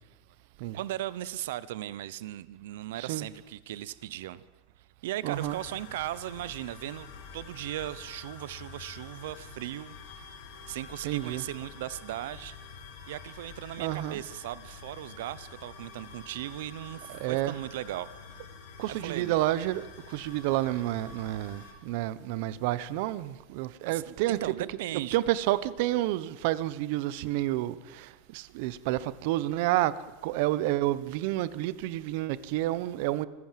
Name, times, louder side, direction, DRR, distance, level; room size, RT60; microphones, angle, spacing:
voice 1, 0.7-4.4 5.0-9.9 10.7-12.6 13.1-18.4 18.9-19.4 23.9-25.2, right 14 dB, 90° right, 0.8 m, -37 dB
voice 2, 5.2-5.6 11.0-11.4 13.8-14.2 17.1-17.5 18.8-24.4 25.1-30.0 30.2-33.3, right 15 dB, 60° right, 1.0 m, -30 dB
sound 1, 5.3-21.7, left 5 dB, 80° left, 4.7 m, -48 dB
25.0 x 16.0 x 7.6 m
supercardioid pair, 165°, 0 cm